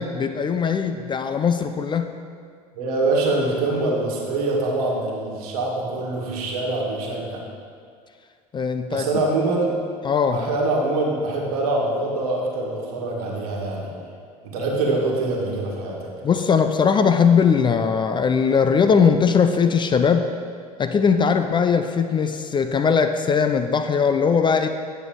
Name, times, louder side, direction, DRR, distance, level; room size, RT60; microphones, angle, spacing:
voice 1, 0.0-2.1 8.5-9.1 10.0-10.5 16.2-20.3 20.8-24.7, left 6 dB, 25° left, 8 dB, 0.4 m, -20 dB
voice 2, 2.7-7.4 8.9-9.8 10.3-13.9 14.4-16.1, right 2 dB, 70° right, -1 dB, 1.6 m, -24 dB
9.1 x 6.2 x 3.8 m, 2.1 s
hypercardioid pair, 75°, 20 cm